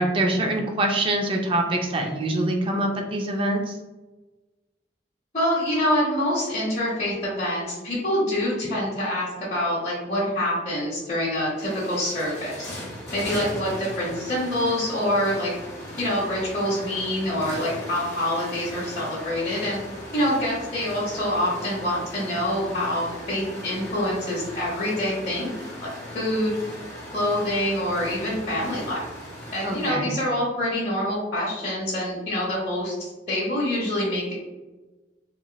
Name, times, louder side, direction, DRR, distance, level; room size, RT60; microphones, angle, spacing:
voice 1, 0.0-3.8 29.6-30.1, right 1 dB, 30° right, 2 dB, 0.4 m, -24 dB
voice 2, 5.3-12.7 13.1-15.5 16.0-19.8 20.1-25.5 26.1-26.5 27.1-29.0 29.5-34.3, left 1 dB, 40° left, -7 dB, 0.8 m, -26 dB
sound 1, 11.0-11.1 11.4-29.9, equal, 20° left, 0.9 m, -38 dB
2.9 x 2.8 x 2.2 m, 1.1 s
head